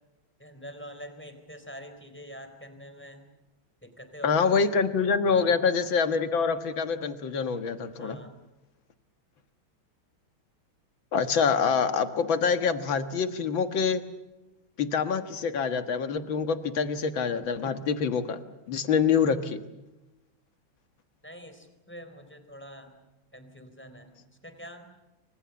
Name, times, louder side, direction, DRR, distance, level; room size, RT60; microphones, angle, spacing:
voice 1, 0.4-3.3 3.8-4.7 5.2-5.6 8.0-8.4 21.2-22.9 23.3-24.1 24.4-24.8, equal, 5° left, 8 dB, 3.8 m, -45 dB
voice 2, 4.2-8.2 11.1-14.0 14.8-18.4 18.7-19.6, left 5 dB, 65° left, 9 dB, 2.2 m, -26 dB
28.5 x 25.0 x 7.1 m, 1.0 s
omnidirectional pair, 2.3 m